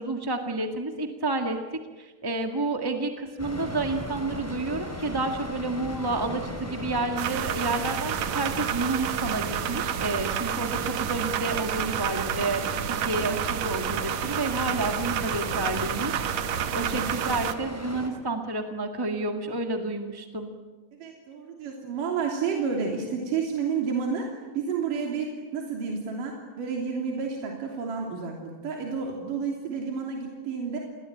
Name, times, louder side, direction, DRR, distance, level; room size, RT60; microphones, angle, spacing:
voice 1, 0.0-1.6 2.0-16.2 16.7-20.5, right 2 dB, 10° right, 4 dB, 1.0 m, -30 dB
sound 1, 3.4-18.1, equal, 5° left, 4.4 m, -38 dB
sound 2, 7.2-17.5, right 10 dB, 70° right, 2.3 m, -30 dB
voice 2, 16.8-17.1 20.9-30.8, right 5 dB, 85° right, 0 dB, 4.7 m, -30 dB
29.5 x 22.0 x 9.1 m, 1.3 s
omnidirectional pair, 3.7 m